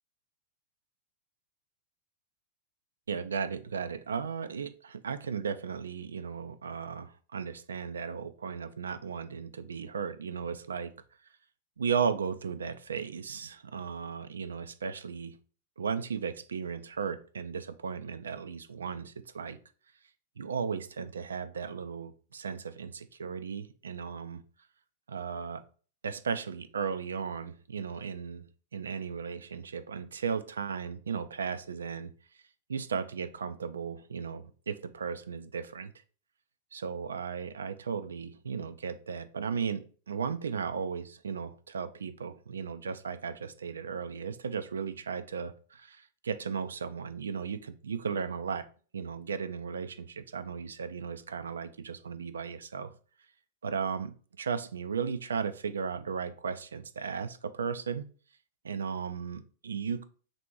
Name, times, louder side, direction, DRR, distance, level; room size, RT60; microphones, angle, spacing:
voice 1, 3.1-10.9 11.8-15.4 15.8-19.6 20.4-24.4 25.1-25.6 26.0-28.5 28.7-32.1 32.7-35.9 36.7-48.7 48.9-52.9 53.6-58.1 58.6-60.1, right 6 dB, 75° right, 11 dB, 0.4 m, -35 dB
3.4 x 2.7 x 4.5 m, 0.41 s
figure-of-eight pair, 95°, 0 cm